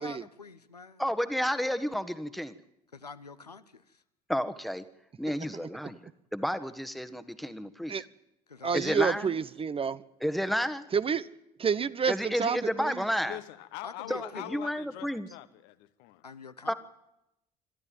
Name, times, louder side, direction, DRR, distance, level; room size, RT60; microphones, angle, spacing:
voice 1, 0.0-1.0 2.9-4.0 8.5-9.2 13.8-14.6 16.2-16.7, left 4 dB, 90° left, 0.7 m, -46 dB
voice 2, 1.0-2.5 4.3-4.8 5.2-6.0 6.3-7.9 8.7-9.3 10.2-10.8 12.1-13.4 14.1-15.3 16.7-16.8, equal, ahead, 1.4 m, -31 dB
voice 3, 8.6-10.0 10.9-11.3 11.6-13.0, right 6 dB, 30° right, 0.8 m, -29 dB
voice 4, 13.2-16.2, left 16 dB, 60° left, 1.1 m, -43 dB
26.5 x 12.5 x 9.3 m
figure-of-eight pair, 55°, 20 cm